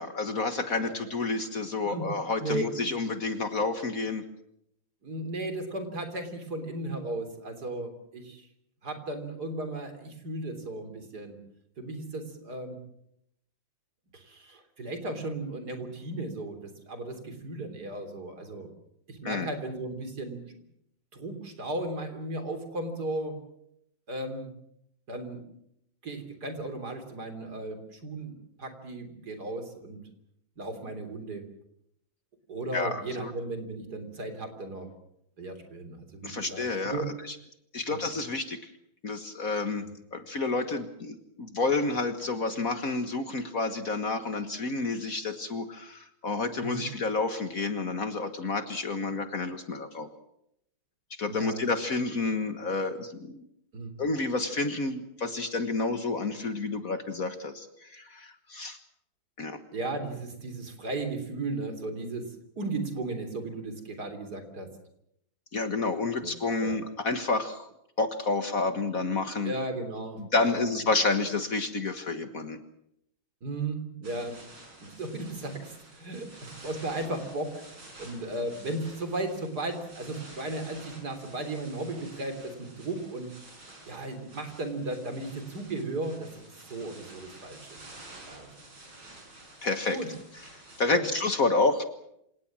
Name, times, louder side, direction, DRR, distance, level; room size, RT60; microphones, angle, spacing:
voice 1, 0.0-4.2 19.2-19.5 32.7-33.3 36.2-37.4 37.7-38.7 39.0-50.1 51.2-53.4 54.0-58.8 59.4-59.6 65.5-67.7 68.0-69.5 70.2-72.6 89.6-90.0 90.8-91.8, left 3 dB, 45° left, 9 dB, 1.8 m, -30 dB
voice 2, 5.0-8.5 8.8-11.4 11.8-12.8 14.1-18.7 19.1-20.4 21.1-23.4 24.1-24.5 25.1-25.5 26.0-30.0 30.6-31.4 32.5-34.9 35.4-37.1 37.9-38.0 39.8-39.9 46.6-46.8 51.3-51.6 53.7-53.9 59.7-64.7 66.2-66.3 66.6-66.8 69.4-70.6 73.4-74.4 74.8-83.4 83.9-87.8 88.3-88.5 89.9-90.1 90.9-91.1, right 2 dB, 50° right, 8 dB, 3.9 m, -35 dB
sound 1, 74.0-90.9, right 2 dB, 85° right, 6.8 m, -50 dB
27.5 x 18.5 x 7.4 m, 0.76 s
omnidirectional pair, 2.2 m